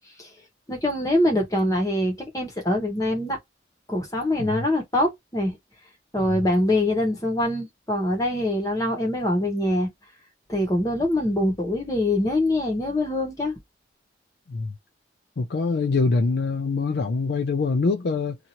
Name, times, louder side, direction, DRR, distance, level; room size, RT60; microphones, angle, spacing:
voice 1, 0.7-3.4 3.9-5.6 6.1-9.9 10.5-13.5, left 1 dB, 20° left, 1.0 m, -24 dB
voice 2, 15.4-18.4, left 4 dB, 60° left, 0.4 m, -24 dB
2.8 x 2.4 x 2.8 m
head